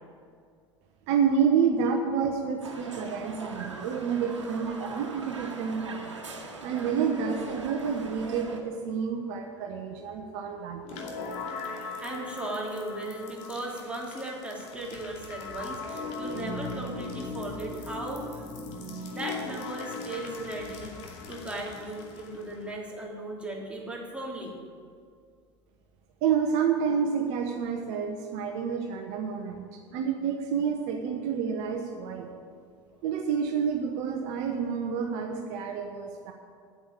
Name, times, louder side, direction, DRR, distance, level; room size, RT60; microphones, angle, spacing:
voice 1, 1.1-6.1 6.6-11.1 26.2-32.3 33.0-36.3, right 6 dB, 50° right, 3 dB, 1.2 m, -29 dB
sound 1, 2.6-8.6, right 3 dB, 80° right, 1.5 m, -41 dB
sound 2, 10.8-22.7, left 3 dB, 50° left, 2.5 m, -39 dB
voice 2, 12.0-18.5 19.1-20.9 21.3-24.6, right 1 dB, 5° right, -3 dB, 3.3 m, -37 dB
8.6 x 8.4 x 9.0 m, 2.2 s
figure-of-eight pair, 80°, 15 cm